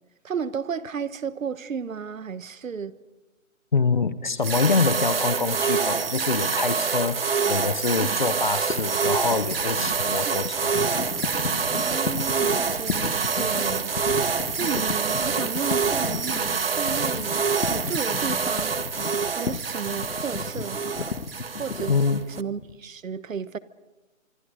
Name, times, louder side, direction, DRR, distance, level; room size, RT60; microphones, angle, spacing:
voice 1, 0.2-2.9 7.4-7.5 8.0-8.2 10.3-10.4 11.7-14.0 14.6-17.4 17.7-19.0 19.3-21.1 21.6-22.0 22.4-23.6, right 6 dB, 70° right, 15 dB, 1.3 m, -33 dB
voice 2, 3.7-10.7 21.9-22.2, left 4 dB, 35° left, 14 dB, 0.9 m, -25 dB
sound 1, 4.4-22.4, right 5 dB, 45° right, 0.7 m, -26 dB
sound 2, 8.7-22.8, left 6 dB, 60° left, 1.4 m, -34 dB
25.5 x 25.0 x 5.0 m, 1.1 s
hypercardioid pair, 175°, 41 cm